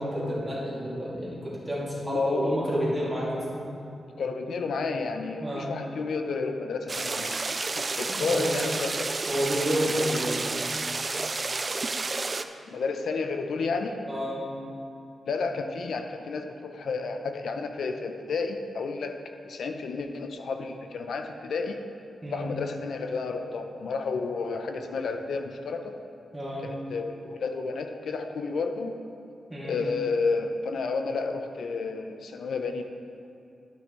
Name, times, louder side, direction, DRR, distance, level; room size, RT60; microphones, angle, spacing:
voice 1, 0.0-3.7 5.4-5.7 8.1-8.5 9.3-10.6 14.1-14.5 22.2-22.5 26.3-26.7 29.5-29.8, equal, 10° right, -7 dB, 2.4 m, -30 dB
voice 2, 2.1-2.5 4.2-7.5 7.8-9.1 9.9-10.2 12.7-14.0 15.3-19.2 19.4-21.8 22.3-25.9 26.6-29.0 29.6-32.8, left 4 dB, 75° left, 5 dB, 0.7 m, -31 dB
sound 1, 6.9-12.4, right 3 dB, 35° right, 0.4 m, -30 dB
11.5 x 8.9 x 3.2 m, 2.6 s
wide cardioid pair, 115°, 0 cm